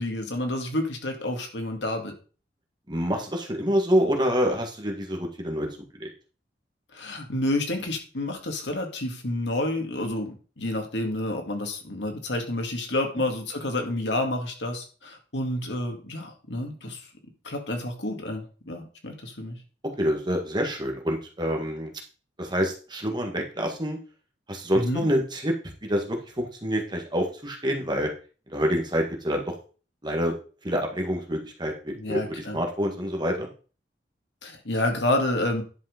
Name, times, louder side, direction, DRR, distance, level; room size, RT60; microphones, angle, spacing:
voice 1, 0.0-2.1 6.9-17.0 17.4-19.6 24.7-25.1 32.0-32.6 34.4-35.6, left 1 dB, 80° left, 3 dB, 2.2 m, -29 dB
voice 2, 2.9-5.7 5.9-6.1 20.0-21.9 22.4-24.0 24.5-25.5 25.8-28.1 28.5-29.5 30.0-30.3 30.6-33.5, equal, 25° right, 2 dB, 1.8 m, -27 dB
10.5 x 5.3 x 5.0 m, 0.37 s
head